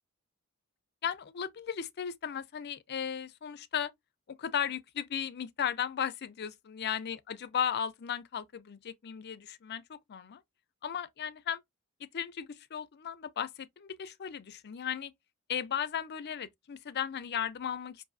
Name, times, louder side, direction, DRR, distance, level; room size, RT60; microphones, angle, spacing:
voice 1, 1.0-3.9 4.3-10.4 10.8-11.6 12.0-15.1 15.5-18.0, left 8 dB, 50° left, 0.5 m, -36 dB
5.6 x 2.6 x 2.5 m
head